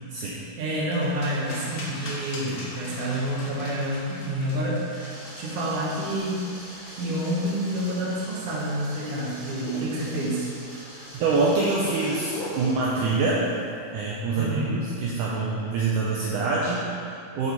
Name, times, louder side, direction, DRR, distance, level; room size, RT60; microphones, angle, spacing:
voice 1, 0.2-6.4 7.0-10.5 14.4-14.9, right 1 dB, 70° right, -5 dB, 1.5 m, -28 dB
sound 1, 0.9-6.1, left 1 dB, 70° left, 1.3 m, -41 dB
sound 2, 2.3-12.7, right 1 dB, 45° right, 2.1 m, -44 dB
sound 3, 5.8-14.1, left 2 dB, 90° left, 1.5 m, -43 dB
voice 2, 10.9-13.5 13.9-17.5, right 3 dB, 90° right, -5 dB, 1.8 m, -25 dB
6.1 x 5.5 x 3.9 m, 2.4 s
omnidirectional pair, 4.3 m